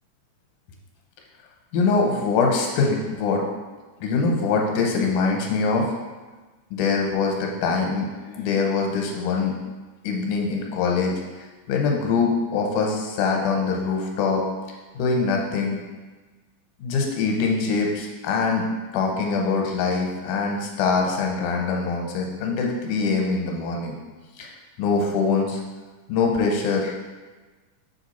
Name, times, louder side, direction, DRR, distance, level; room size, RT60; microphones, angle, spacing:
voice 1, 1.7-3.4 4.0-5.9 6.7-9.5 10.0-11.1 11.7-14.4 15.0-15.8 16.8-18.7 18.9-24.0 24.4-24.5 24.8-25.6 26.1-27.1, left 4 dB, 80° left, 0 dB, 2.3 m, -23 dB
6.8 x 3.6 x 4.2 m, 1.3 s
omnidirectional pair, 3.6 m